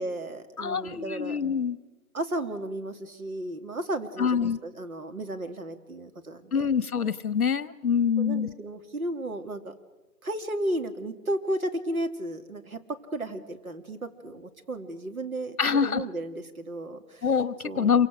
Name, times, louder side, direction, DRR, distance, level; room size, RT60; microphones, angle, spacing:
voice 1, 0.0-1.4 2.1-6.6 8.2-9.7 10.2-17.2 17.6-18.0, right 1 dB, 60° right, 6 dB, 2.5 m, -34 dB
voice 2, 0.6-1.8 4.2-4.6 6.5-8.5 15.6-16.0 17.2-18.1, left 6 dB, 65° left, 16 dB, 1.2 m, -25 dB
27.5 x 24.0 x 6.3 m, 1.1 s
figure-of-eight pair, 175°, 48 cm